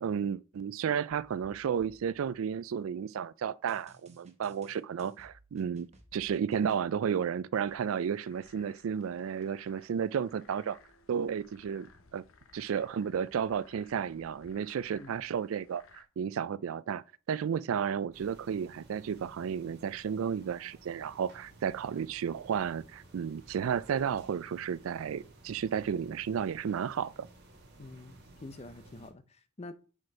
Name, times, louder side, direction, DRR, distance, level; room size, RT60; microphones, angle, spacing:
voice 1, 0.0-10.8 11.1-11.9 12.1-12.2 12.5-27.3, right 7 dB, 80° right, 0.3 m, -33 dB
sound 1, 3.7-6.8, right 1 dB, 35° right, 1.1 m, -60 dB
sound 2, 7.7-16.0, left 4 dB, 90° left, 0.9 m, -60 dB
sound 3, 18.1-29.1, right 2 dB, 55° right, 1.7 m, -56 dB
voice 2, 27.8-29.7, left 2 dB, 30° left, 0.6 m, -47 dB
6.0 x 5.2 x 4.7 m
head